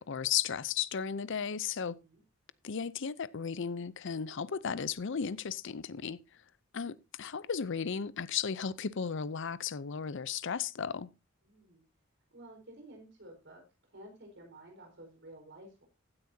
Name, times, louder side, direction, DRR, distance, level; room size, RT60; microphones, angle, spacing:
voice 1, 0.0-2.0 2.6-6.2 6.7-11.1, left 7 dB, 60° left, 0.6 m, -35 dB
voice 2, 11.4-11.8 12.3-13.6 13.9-15.8, right 1 dB, 60° right, 4.7 m, -52 dB
15.5 x 9.6 x 2.8 m
head